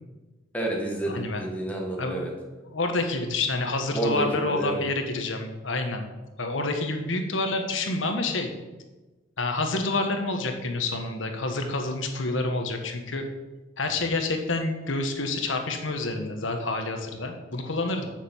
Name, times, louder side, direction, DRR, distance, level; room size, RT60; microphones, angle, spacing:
voice 1, 0.5-2.3 3.9-4.8, right 1 dB, 10° left, -1 dB, 1.8 m, -29 dB
voice 2, 1.1-1.4 2.0-2.2 2.6-6.1 6.4-8.5 9.4-13.3 13.8-18.1, left 2 dB, 75° left, 4 dB, 1.4 m, -28 dB
7.4 x 6.7 x 7.2 m, 1.1 s
head